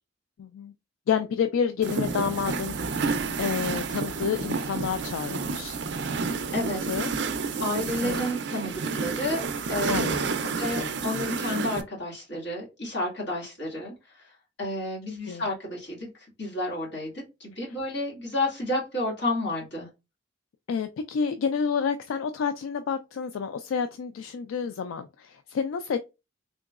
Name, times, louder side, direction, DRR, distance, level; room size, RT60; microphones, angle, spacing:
voice 1, 0.4-0.7 1.1-5.8 6.9-7.1 8.0-8.3 9.9-11.2 15.3-15.4 20.7-26.0, left 6 dB, 90° left, 0.3 m, -30 dB
sound 1, 1.8-11.8, right 4 dB, 60° right, 0.4 m, -30 dB
voice 2, 6.5-6.9 7.6-10.2 10.6-14.3 14.6-16.1 16.4-19.9, left 1 dB, 65° left, 2.1 m, -31 dB
3.7 x 2.9 x 2.3 m
head